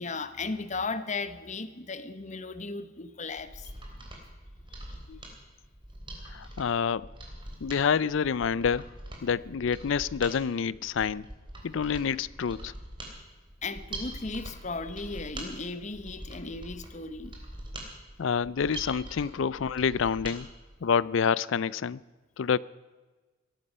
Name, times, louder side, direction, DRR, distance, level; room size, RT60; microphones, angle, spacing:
voice 1, 0.0-3.7 13.6-17.4, left 3 dB, 35° left, 13 dB, 0.9 m, -36 dB
Mechanisms, 3.3-20.4 20.7-20.8, right 1 dB, 25° right, 3.3 m, -43 dB
voice 2, 6.3-7.1 7.6-8.8 9.2-11.3 11.6-12.7 18.2-20.5 20.8-22.0 22.4-22.6, left 6 dB, 65° left, 22 dB, 0.4 m, -27 dB
18.5 x 14.0 x 5.5 m, 1.3 s
head